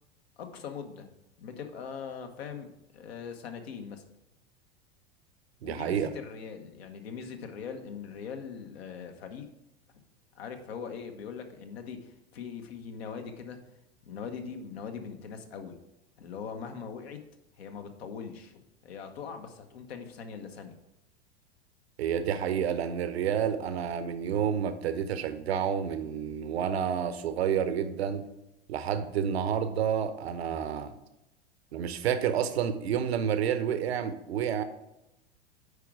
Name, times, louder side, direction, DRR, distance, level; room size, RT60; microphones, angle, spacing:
voice 1, 0.4-1.1 1.4-4.1 5.6-9.5 10.3-13.6 14.0-15.8 16.2-17.2 17.6-20.8, left 6 dB, 65° left, 6 dB, 1.2 m, -41 dB
voice 2, 5.6-6.1 22.0-28.2 28.7-30.9 31.7-34.6, right 8 dB, 70° right, 11 dB, 0.9 m, -29 dB
8.3 x 4.9 x 4.8 m, 0.89 s
hypercardioid pair, 90°, 33 cm